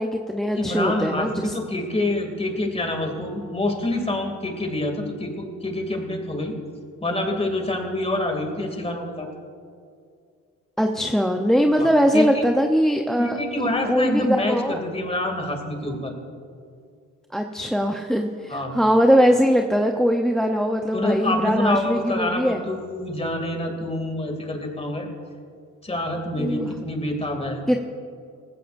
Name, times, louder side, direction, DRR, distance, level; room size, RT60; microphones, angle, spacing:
voice 1, 0.0-1.5 10.8-13.4 13.9-14.8 17.3-22.6 26.4-26.7 27.7-27.8, equal, ahead, 3 dB, 0.8 m, -21 dB
voice 2, 0.5-6.5 7.0-9.3 11.8-12.4 13.2-16.1 18.5-18.7 20.9-25.1 25.8-27.8, left 1 dB, 20° left, 3 dB, 2.6 m, -26 dB
18.5 x 16.0 x 2.6 m, 2.3 s
cardioid pair, 90°, 30 cm